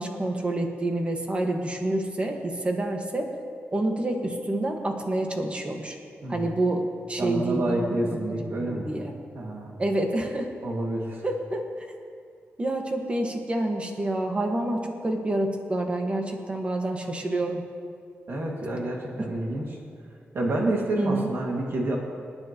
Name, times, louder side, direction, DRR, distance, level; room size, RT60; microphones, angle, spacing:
voice 1, 0.0-3.3 3.7-6.0 6.3-7.8 8.1-9.1 9.8-10.5 11.2-11.9 12.6-17.6 21.0-21.3, right 1 dB, 25° right, 2 dB, 1.6 m, -28 dB
voice 2, 6.2-6.6 7.2-8.9 9.3-9.7 10.6-11.2 18.3-19.8 20.3-22.0, right 1 dB, 60° right, -2 dB, 2.2 m, -28 dB
27.5 x 9.7 x 3.0 m, 2.2 s
wide cardioid pair, 125°, 5 cm